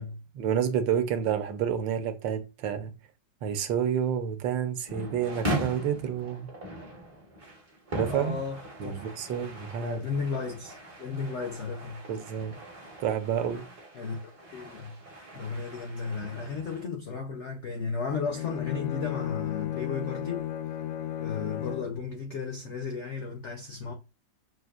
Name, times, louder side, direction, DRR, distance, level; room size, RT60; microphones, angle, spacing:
voice 1, 0.3-2.9 3.4-6.5 7.9-8.4 8.8-10.0 12.1-12.5 13.0-13.6, right 8 dB, 75° right, 1.3 m, -29 dB
sound 1, 4.9-16.8, right 1 dB, 40° right, 0.5 m, -39 dB
voice 2, 8.1-9.4 9.8-12.1 13.9-14.2 14.5-15.0 15.3-20.4 21.2-23.9, left 5 dB, 70° left, 0.6 m, -34 dB
Bowed string instrument, 18.2-22.0, left 11 dB, 85° left, 1.4 m, -34 dB
6.1 x 2.6 x 2.3 m
omnidirectional pair, 2.1 m